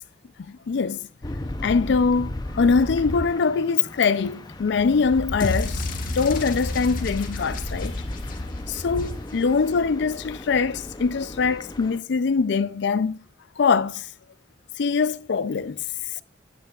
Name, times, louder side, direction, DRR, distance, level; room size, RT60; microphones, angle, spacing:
voice 1, 0.4-1.1 1.6-5.9 6.2-8.1 8.7-13.2 13.6-14.1 14.8-15.8, left 5 dB, 65° left, 0.4 m, -23 dB
sound 1, 1.2-12.0, left 1 dB, 20° left, 0.6 m, -34 dB
sound 2, 5.4-9.6, left 2 dB, 50° left, 1.3 m, -32 dB
9.3 x 8.0 x 2.4 m
head